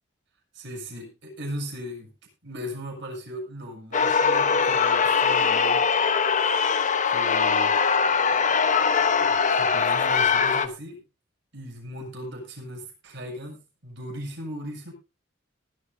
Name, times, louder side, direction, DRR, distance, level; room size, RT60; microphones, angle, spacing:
voice 1, 0.5-2.1 2.4-5.8 7.1-7.7 9.2-11.0 11.5-14.9, equal, 60° right, -1 dB, 7.3 m, -37 dB
sound 1, 3.9-10.7, left 5 dB, 40° left, 1.1 m, -22 dB
19.5 x 12.5 x 2.8 m, 0.29 s
head